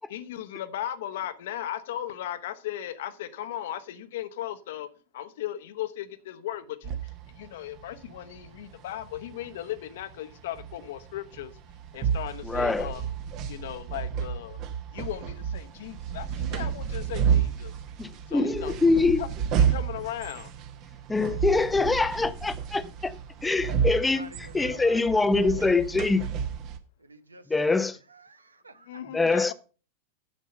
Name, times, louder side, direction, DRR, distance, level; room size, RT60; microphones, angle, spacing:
voice 1, 0.1-11.6 11.9-13.0 13.5-14.6 14.9-17.7 18.3-18.7 19.2-19.3 19.7-20.5 28.9-29.5, left 12 dB, 55° left, 1.0 m, -37 dB
sound 1, 6.8-26.8, right 8 dB, 40° right, 1.2 m, -31 dB
voice 2, 12.4-12.9 18.0-19.2 21.1-23.1 23.4-24.3 24.5-26.2 27.5-28.0 29.1-29.5, left 3 dB, 10° left, 0.7 m, -24 dB
voice 3, 24.0-26.3 27.0-27.8 28.1-29.0, right 2 dB, 80° right, 1.0 m, -48 dB
10.5 x 7.4 x 5.4 m
figure-of-eight pair, 90°, 0 cm